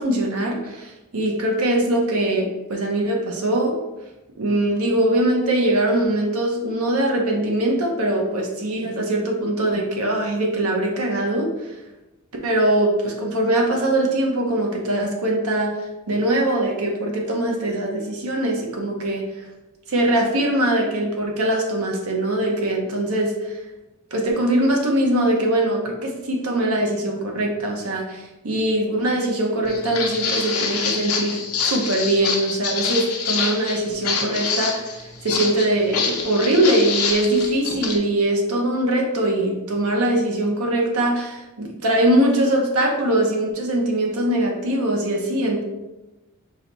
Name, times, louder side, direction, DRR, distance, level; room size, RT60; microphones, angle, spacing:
voice 1, 0.0-3.8 4.4-11.5 12.4-15.8 16.1-19.5 19.9-23.6 24.1-45.6, right 1 dB, 85° right, 0 dB, 0.9 m, -22 dB
Walk footsteps, 29.7-38.0, left 5 dB, 90° left, 0.7 m, -26 dB
4.6 x 2.3 x 4.0 m, 1.0 s
head